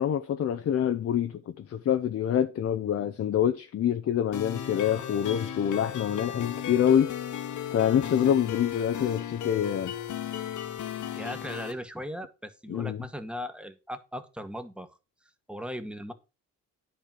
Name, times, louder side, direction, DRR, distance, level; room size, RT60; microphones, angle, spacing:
voice 1, 0.0-7.1 7.7-9.9 12.7-13.0, left 9 dB, 50° left, 0.8 m, -26 dB
sound 1, 4.3-11.7, left 10 dB, 75° left, 1.5 m, -35 dB
voice 2, 11.1-15.0 15.5-16.1, equal, 5° right, 1.5 m, -38 dB
10.5 x 4.2 x 7.5 m
cardioid pair, 90°, 30 cm